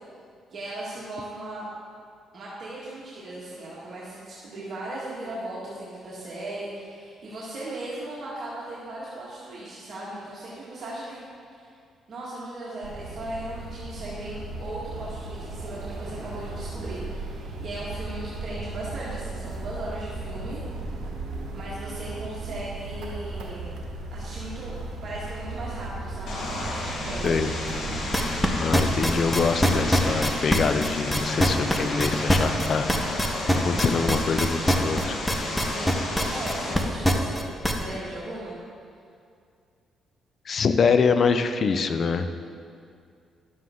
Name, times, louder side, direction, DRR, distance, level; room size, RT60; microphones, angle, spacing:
voice 1, 0.5-1.7 2.3-11.2 11.5-11.7 12.1-20.6 21.5-23.7 24.1-27.4 35.6-38.6, right 1 dB, 55° right, -8 dB, 1.9 m, -37 dB
sound 1, 12.8-30.2, right 2 dB, 80° right, 1.2 m, -36 dB
Vehicle, 26.3-36.7, left 2 dB, 65° left, 2.0 m, -32 dB
sound 2, 28.1-37.8, equal, 5° left, 1.0 m, -22 dB
voice 2, 28.6-35.2 40.5-42.3, left 5 dB, 50° left, 9 dB, 0.6 m, -25 dB
11.5 x 7.6 x 3.8 m, 2.3 s
cardioid pair, 90°, 0 cm